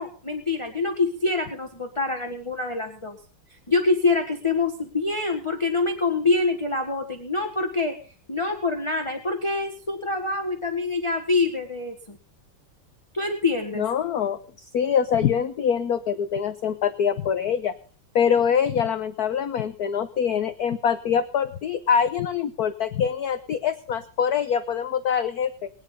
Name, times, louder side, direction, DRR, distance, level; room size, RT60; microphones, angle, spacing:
voice 1, 0.0-3.2 3.5-8.0 8.3-12.2 13.1-13.8, left 3 dB, 15° left, 4 dB, 1.4 m, -25 dB
voice 2, 13.7-14.4 14.7-17.7 18.1-25.7, left 7 dB, 60° left, 11 dB, 1.1 m, -24 dB
20.5 x 10.0 x 5.4 m, 0.40 s
omnidirectional pair, 2.4 m